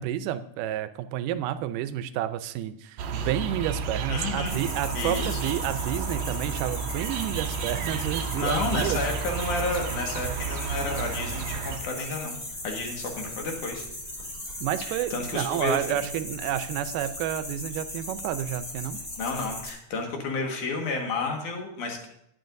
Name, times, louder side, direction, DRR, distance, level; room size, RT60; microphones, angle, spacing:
voice 1, 0.0-9.0 14.6-19.0, right 11 dB, 90° right, 12 dB, 2.2 m, -30 dB
sound 1, 3.0-11.8, right 6 dB, 70° right, 1.8 m, -32 dB
voice 2, 4.1-4.6 4.9-5.4 8.4-12.4 12.6-13.8 14.9-15.8 19.2-22.1, left 3 dB, 70° left, 2 dB, 3.1 m, -31 dB
sound 2, 4.5-19.7, left 1 dB, 15° left, 2.8 m, -38 dB
20.0 x 7.6 x 2.6 m, 0.78 s
omnidirectional pair, 3.7 m